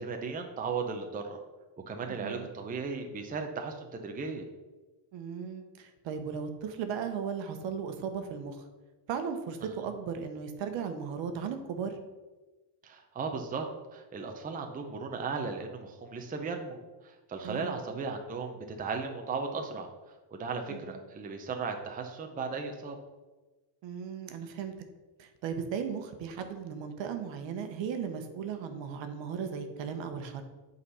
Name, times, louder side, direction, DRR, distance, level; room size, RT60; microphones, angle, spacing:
voice 1, 0.0-1.4 1.9-4.4 9.6-9.7 12.8-13.7 13.9-19.9 20.3-23.0, right 4 dB, 20° right, 4 dB, 0.6 m, -36 dB
voice 2, 2.1-2.5 5.1-8.7 9.1-12.0 17.4-17.8 20.7-21.0 23.8-24.7 25.2-30.4, right 6 dB, 65° right, 7 dB, 1.0 m, -36 dB
8.3 x 4.0 x 5.5 m, 1.2 s
cardioid pair, 145°, 48 cm